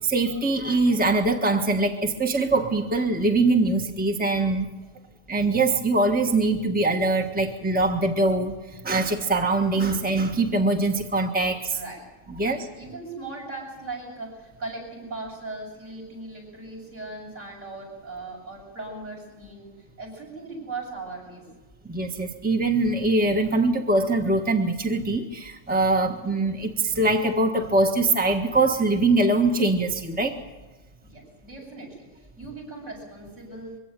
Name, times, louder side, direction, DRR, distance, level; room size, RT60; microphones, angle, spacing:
voice 1, 0.0-4.7 5.3-11.8 12.4-12.6 21.9-30.3, right 2 dB, 5° right, 2 dB, 1.5 m, -23 dB
voice 2, 11.7-12.1 12.4-19.7 20.0-21.5 31.0-33.8, right 3 dB, 65° right, -2 dB, 8.4 m, -38 dB
23.5 x 16.0 x 9.0 m, 1.2 s
omnidirectional pair, 1.4 m